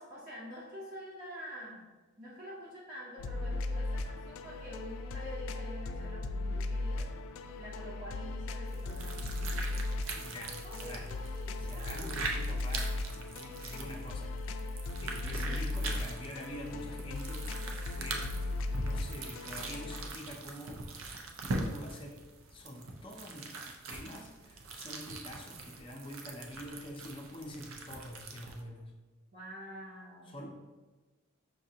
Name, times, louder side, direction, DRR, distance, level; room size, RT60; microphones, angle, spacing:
voice 1, 0.0-1.9 2.2-9.9 10.6-12.2 15.2-15.6 29.3-30.5, equal, 45° right, -8 dB, 0.8 m, -47 dB
sound 1, 3.2-20.1, left 2 dB, 75° left, 0.3 m, -37 dB
sound 2, 8.7-28.6, right 3 dB, 75° right, 0.5 m, -42 dB
voice 2, 10.1-11.1 11.6-14.7 15.0-17.5 18.0-18.3 18.7-20.8 21.4-22.2 22.5-23.6 23.9-28.9 30.3-30.5, equal, 25° left, 0 dB, 0.5 m, -46 dB
5.9 x 2.6 x 2.8 m, 1.2 s
head